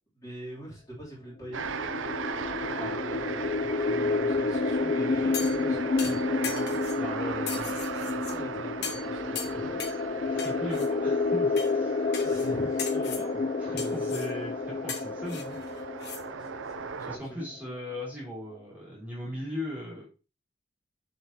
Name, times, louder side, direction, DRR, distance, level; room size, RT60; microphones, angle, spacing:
voice 1, 0.1-1.7 2.7-7.0 8.0-10.5 12.0-13.5 13.7-14.1 16.2-17.5, right 1 dB, 15° left, -5 dB, 3.1 m, -43 dB
sound 1, 1.5-17.2, left 3 dB, 35° left, 0.3 m, -30 dB
sound 2, 1.5-17.2, right 6 dB, 70° right, 0.6 m, -38 dB
sound 3, 5.3-5.6 6.0-7.0 7.5-8.4 8.8-9.1 9.4-10.0 10.4-10.9 11.6-11.7 12.1-12.5 12.8-13.3 13.8-14.3 14.9-16.2 16.6-16.7, left 6 dB, 55° left, 1.2 m, -38 dB
voice 2, 6.9-7.8 9.4-9.8 10.1-12.0 13.6-15.6 17.0-20.1, left 1 dB, 10° right, -6 dB, 2.7 m, -38 dB
7.0 x 5.6 x 2.9 m, 0.32 s
head